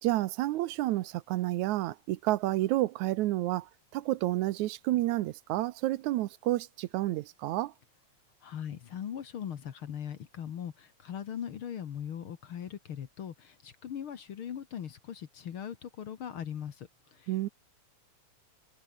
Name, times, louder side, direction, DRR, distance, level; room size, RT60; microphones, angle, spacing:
voice 1, 0.0-7.7 17.3-17.5, right 16 dB, 80° right, 2.2 m, -30 dB
voice 2, 8.4-17.3, left 9 dB, 55° left, 1.9 m, -40 dB
omnidirectional pair, 3.3 m